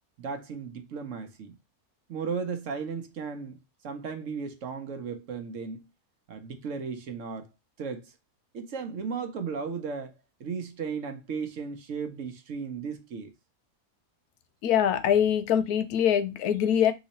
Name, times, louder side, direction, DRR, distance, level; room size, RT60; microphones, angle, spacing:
voice 1, 0.2-1.5 2.1-3.6 3.8-5.9 6.3-7.5 7.8-8.1 8.5-10.1 10.4-13.3, right 5 dB, 60° right, 1.0 m, -35 dB
voice 2, 14.6-16.9, left 9 dB, 80° left, 1.1 m, -23 dB
4.0 x 3.0 x 4.0 m
omnidirectional pair, 1.6 m